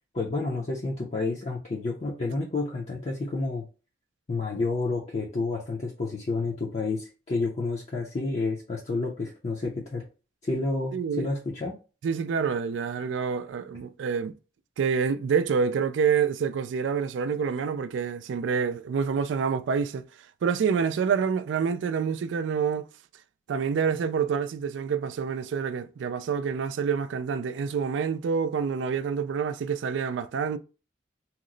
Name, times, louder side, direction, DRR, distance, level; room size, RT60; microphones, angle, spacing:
voice 1, 0.1-3.6 4.3-10.0 10.4-11.8, left 3 dB, 40° left, 0.5 m, -30 dB
voice 2, 10.9-11.3 12.0-14.3 14.8-20.0 20.4-22.9 23.5-30.6, right 6 dB, 85° right, 0.3 m, -27 dB
2.9 x 2.0 x 3.8 m
head